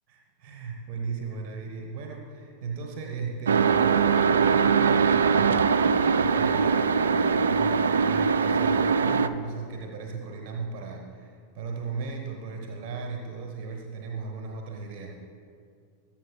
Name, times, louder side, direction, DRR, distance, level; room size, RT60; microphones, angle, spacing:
voice 1, 0.1-5.7 6.2-15.3, right 4 dB, 45° right, 2 dB, 1.0 m, -37 dB
sound 1, 3.5-9.3, right 5 dB, 65° right, 0.3 m, -22 dB
20.5 x 7.4 x 2.3 m, 2.3 s
figure-of-eight pair, 90°, 0 cm